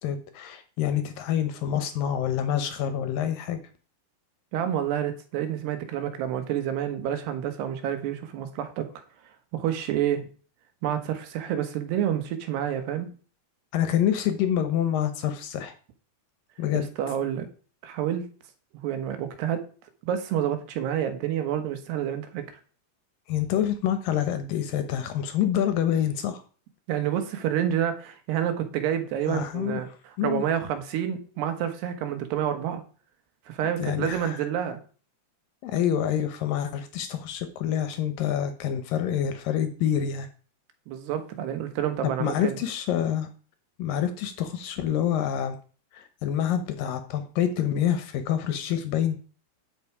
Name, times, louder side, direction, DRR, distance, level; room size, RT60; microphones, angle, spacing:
voice 1, 0.0-3.6 13.7-15.7 16.6-16.9 23.3-26.4 29.3-29.8 30.2-30.4 33.8-34.4 35.6-40.3 42.0-43.3 43.8-45.6 45.9-49.2, left 10 dB, 70° left, 9 dB, 2.3 m, -27 dB
voice 2, 4.5-8.9 9.5-10.3 10.8-13.1 17.0-17.5 17.8-18.3 18.7-19.6 20.0-22.4 26.9-29.9 30.2-32.8 33.5-34.8 40.9-42.5, right 10 dB, 85° right, 7 dB, 3.4 m, -28 dB
9.7 x 7.7 x 4.8 m, 0.40 s
omnidirectional pair, 4.6 m